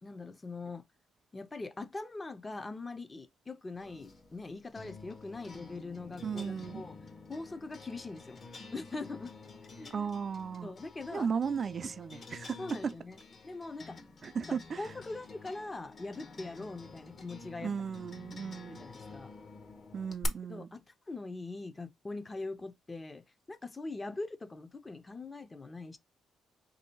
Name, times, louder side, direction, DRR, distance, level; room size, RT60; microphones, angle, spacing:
voice 1, 0.0-0.8 1.3-7.0 7.3-8.4 8.7-9.4 9.8-10.1 10.6-11.3 11.8-11.9 12.6-13.2 13.4-14.0 14.5-17.7 18.7-19.3 20.5-26.0, left 3 dB, 25° left, 0.5 m, -42 dB
sound 1, 3.8-20.3, left 3 dB, 45° left, 0.9 m, -49 dB
voice 2, 6.2-6.8 9.9-10.7 11.1-12.9 14.2-14.9 17.6-18.8 19.9-20.7, right 6 dB, 45° right, 0.3 m, -35 dB
3.1 x 2.7 x 4.3 m
cardioid pair, 90°, 0 cm